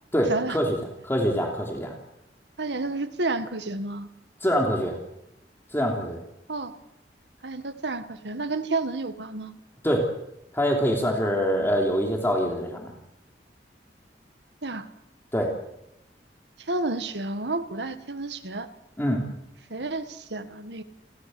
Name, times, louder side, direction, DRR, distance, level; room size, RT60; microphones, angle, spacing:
voice 1, 0.1-0.8 1.0-1.9 4.4-5.0 5.7-6.2 9.8-10.1 10.5-12.9 15.3-15.5 19.0-19.2, equal, 15° left, 1 dB, 3.3 m, -24 dB
voice 2, 2.6-4.1 6.5-6.7 7.4-9.6 14.6-14.9 16.6-18.7 19.7-20.8, right 2 dB, 80° right, 9 dB, 1.8 m, -30 dB
29.5 x 14.5 x 7.9 m, 0.85 s
head